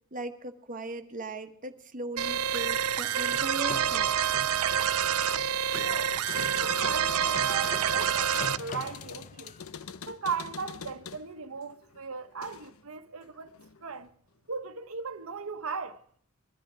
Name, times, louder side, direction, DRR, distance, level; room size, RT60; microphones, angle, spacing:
voice 1, 0.1-4.1, right 2 dB, 40° right, 1.4 m, -38 dB
sound 1, 2.2-8.6, right 9 dB, 90° right, 0.6 m, -27 dB
sound 2, 3.0-9.7, left 4 dB, 35° left, 0.6 m, -44 dB
voice 2, 5.7-9.5 10.1-13.5 13.8-14.1 14.5-16.0, right 5 dB, 70° right, 1.2 m, -37 dB
sound 3, 6.1-12.9 13.2-14.1, left 6 dB, 75° left, 0.8 m, -44 dB
22.0 x 13.0 x 4.9 m
head